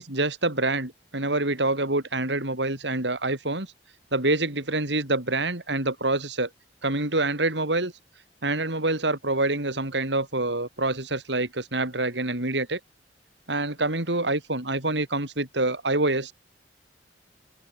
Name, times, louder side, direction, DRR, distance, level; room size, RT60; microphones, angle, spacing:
voice 1, 0.0-3.7 4.1-6.5 6.8-7.9 8.4-12.8 13.5-16.3, right 2 dB, 75° right, 5.2 m, -26 dB
head